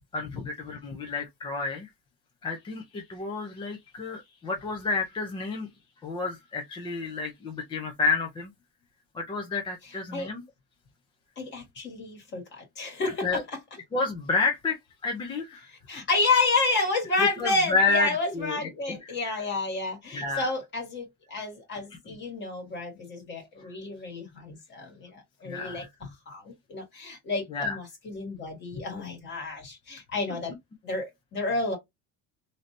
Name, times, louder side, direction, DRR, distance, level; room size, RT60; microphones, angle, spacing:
voice 1, 0.1-1.9 2.4-5.7 6.0-8.5 9.1-10.4 13.2-13.4 13.9-14.8 15.0-15.7 17.4-18.6 18.9-19.4 20.1-20.5 22.1-22.2 25.4-25.9 27.5-27.8, left 3 dB, 15° left, 0.3 m, -30 dB
voice 2, 9.8-10.3 11.4-13.4 15.6-30.5 30.8-31.8, left 3 dB, 30° left, 1.9 m, -30 dB
3.2 x 2.6 x 2.6 m
cardioid pair, 165°, 35 cm